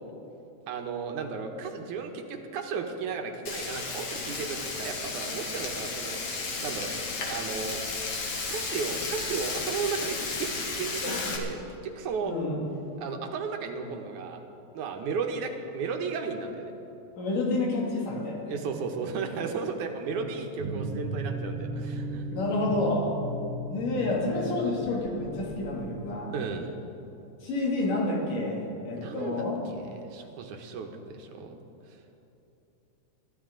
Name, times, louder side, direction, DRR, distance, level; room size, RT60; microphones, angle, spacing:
voice 1, 0.7-6.2 6.6-6.9 7.2-7.8 8.5-12.3 13.0-14.4 14.7-16.7 18.5-22.3 26.3-26.7 29.0-31.6, right 5 dB, 75° right, 4 dB, 2.4 m, -34 dB
Frying (food), 3.5-11.4, left 3 dB, 55° left, 2.5 m, -33 dB
voice 2, 12.2-12.6 17.2-18.6 20.1-20.2 22.3-23.1 23.7-26.3 27.4-29.6, left 2 dB, 80° left, -3 dB, 4.2 m, -29 dB
sound 1, 20.6-26.5, right 2 dB, 55° right, 1.7 m, -36 dB
22.0 x 13.5 x 3.8 m, 3.0 s
omnidirectional pair, 3.7 m